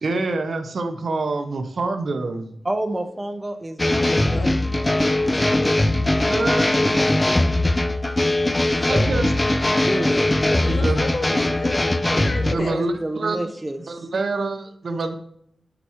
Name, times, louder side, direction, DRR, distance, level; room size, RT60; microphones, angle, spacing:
voice 1, 0.0-2.5 6.2-7.0 8.9-10.1 10.6-11.4 12.5-13.5 13.9-15.1, right 3 dB, 60° right, 0.7 m, -27 dB
voice 2, 2.6-5.2 5.4-5.6 8.6-9.4 9.7-10.3 12.6-13.9, right 1 dB, 15° right, 0.6 m, -30 dB
sound 1, 3.8-12.5, left 1 dB, 20° left, 0.4 m, -20 dB
voice 3, 10.5-12.9, left 2 dB, 55° left, 1.1 m, -32 dB
9.7 x 4.8 x 3.0 m
wide cardioid pair, 130°, 0 cm